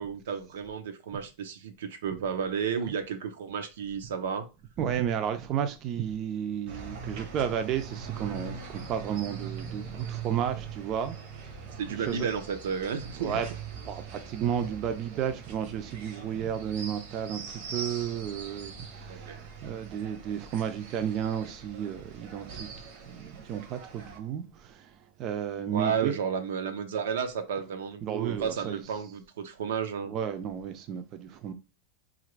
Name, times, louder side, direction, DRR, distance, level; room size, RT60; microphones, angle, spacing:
voice 1, 0.0-4.5 11.8-13.4 19.1-19.4 25.7-30.2, right 7 dB, 90° right, 0.6 m, -32 dB
voice 2, 4.8-12.3 13.2-13.5 13.8-22.7 23.1-26.1 28.0-28.8 30.1-31.5, right 9 dB, 35° right, 0.4 m, -33 dB
sound 1, 6.7-24.2, right 6 dB, 60° right, 0.8 m, -42 dB
2.8 x 2.4 x 3.2 m
supercardioid pair, 145°, 0 cm